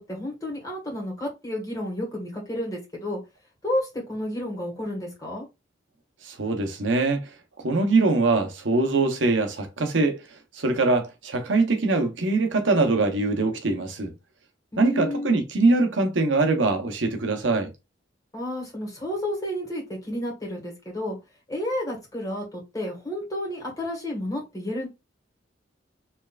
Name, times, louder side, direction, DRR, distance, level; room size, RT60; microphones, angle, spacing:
voice 1, 0.0-3.2 3.6-5.5 14.7-15.3 18.3-21.2 21.5-24.9, left 1 dB, 20° left, 1.9 m, -31 dB
voice 2, 6.2-7.3 7.6-10.2 10.5-14.1 14.8-17.7, right 3 dB, 80° right, 0.9 m, -23 dB
4.4 x 3.3 x 2.4 m
head